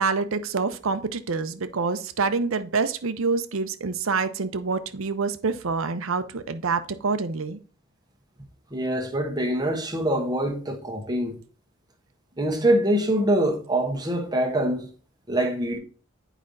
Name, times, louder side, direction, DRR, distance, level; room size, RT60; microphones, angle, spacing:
voice 1, 0.0-7.6, right 4 dB, 75° right, 0.6 m, -26 dB
voice 2, 8.7-11.4 12.4-14.9 15.3-15.8, right 1 dB, 20° right, 1.0 m, -24 dB
9.5 x 5.0 x 2.6 m
head